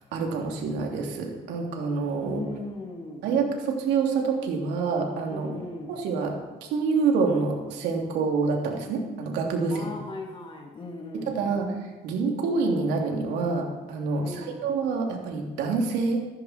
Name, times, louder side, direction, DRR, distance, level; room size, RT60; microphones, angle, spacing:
voice 1, 0.1-2.4 3.2-5.6 5.9-6.3 6.7-9.9 11.3-11.6 12.0-16.2, right 4 dB, 85° right, 1 dB, 3.3 m, -27 dB
voice 2, 2.2-3.3 5.3-6.0 9.7-11.4 14.1-14.7, left 2 dB, 30° left, 0 dB, 2.2 m, -38 dB
16.0 x 13.5 x 4.6 m, 1.2 s
cardioid pair, 110°, 17 cm